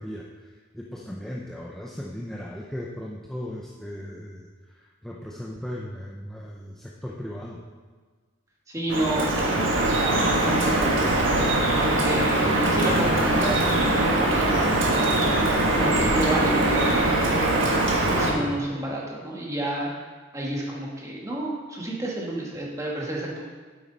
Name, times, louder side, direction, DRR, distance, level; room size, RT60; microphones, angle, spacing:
voice 1, 0.0-4.5 4.7-7.6 15.9-16.2 18.4-18.6, equal, ahead, -3 dB, 0.6 m, -37 dB
voice 2, 8.7-15.4 15.7-17.5 18.1-19.9 20.3-23.4, right 2 dB, 15° right, -4 dB, 1.7 m, -31 dB
Drip, 8.9-18.3, right 1 dB, 65° right, 1.5 m, -22 dB
9.4 x 8.1 x 4.1 m, 1.4 s
head